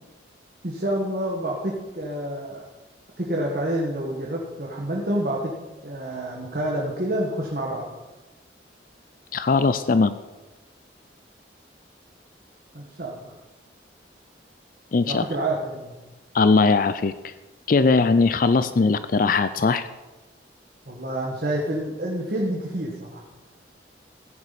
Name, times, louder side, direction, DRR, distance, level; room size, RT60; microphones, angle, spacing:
voice 1, 0.6-2.6 3.2-5.6 5.8-7.9 12.7-13.3 15.1-15.9 20.9-23.2, right 1 dB, 50° right, -3 dB, 1.7 m, -28 dB
voice 2, 9.3-10.2 14.9-15.3 16.3-17.3 17.7-19.9, left 4 dB, 45° left, 12 dB, 0.4 m, -20 dB
15.0 x 9.8 x 4.2 m, 1.1 s
head